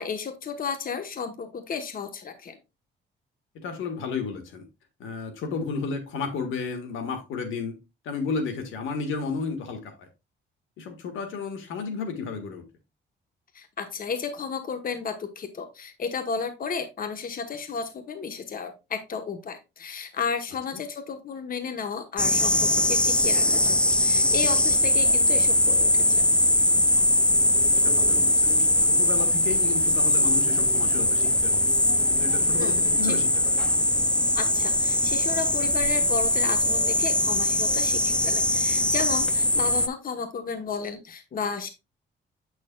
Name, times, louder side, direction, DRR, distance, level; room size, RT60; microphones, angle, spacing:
voice 1, 0.0-2.6 13.5-26.2 32.6-33.1 34.3-41.7, left 5 dB, 45° left, 1.1 m, -33 dB
voice 2, 3.6-4.6 5.0-7.8 8.0-10.1 10.8-12.6 27.7-28.5 28.8-31.7 32.1-33.6, left 4 dB, 85° left, 1.6 m, -32 dB
sound 1, 22.2-39.9, left 1 dB, 5° left, 0.4 m, -21 dB
8.0 x 6.5 x 2.3 m
cardioid pair, 90°, 20 cm